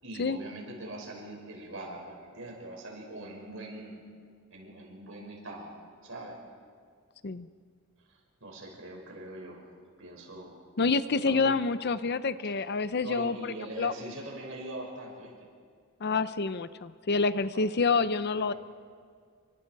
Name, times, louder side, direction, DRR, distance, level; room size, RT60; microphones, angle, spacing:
voice 1, 0.0-4.0 4.5-5.7 6.0-6.4 8.1-9.7 10.0-10.5 11.1-11.6 13.0-15.3 17.5-17.7 18.5-18.6, right 1 dB, 65° right, 0 dB, 6.2 m, -42 dB
voice 2, 10.8-13.9 16.0-18.5, left 4 dB, 50° left, 13 dB, 0.7 m, -28 dB
29.5 x 25.0 x 4.8 m, 2.1 s
head